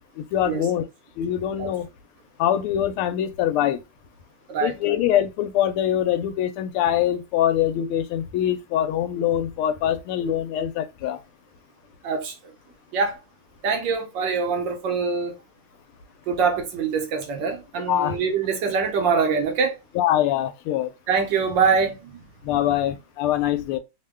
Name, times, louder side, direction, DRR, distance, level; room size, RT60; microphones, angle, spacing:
voice 1, 0.2-0.8 1.2-1.9 2.4-3.8 4.6-11.2 17.9-18.2 19.9-20.9 22.4-23.8, left 11 dB, 90° left, 1.5 m, -23 dB
voice 2, 4.5-5.0 12.0-12.3 12.9-13.2 13.6-15.4 16.3-19.8 21.1-22.8, right 5 dB, 70° right, 1.2 m, -24 dB
3.4 x 2.1 x 3.3 m
omnidirectional pair, 2.3 m